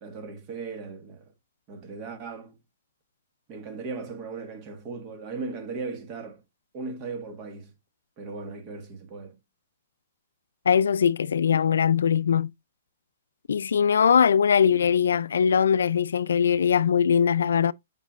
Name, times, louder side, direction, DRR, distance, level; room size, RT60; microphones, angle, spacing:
voice 1, 0.0-1.2 1.7-2.6 3.5-6.4 6.7-7.7 8.2-9.4, right 4 dB, 25° right, 1.4 m, -37 dB
voice 2, 10.7-12.5 13.5-17.7, left 7 dB, 90° left, 0.3 m, -21 dB
7.4 x 5.8 x 2.4 m
hypercardioid pair, 170°, 0 cm